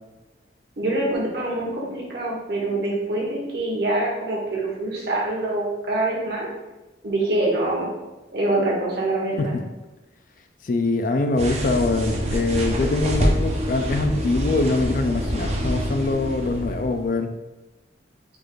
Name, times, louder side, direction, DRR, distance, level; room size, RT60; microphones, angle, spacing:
voice 1, 0.8-6.5 7.0-7.9 8.3-9.6, right 2 dB, 60° right, -3 dB, 1.3 m, -25 dB
voice 2, 10.6-17.3, left 2 dB, 45° left, 6 dB, 0.4 m, -23 dB
sound 1, 11.4-17.1, equal, 35° right, 0.6 m, -26 dB
4.6 x 2.5 x 4.5 m, 1.1 s
head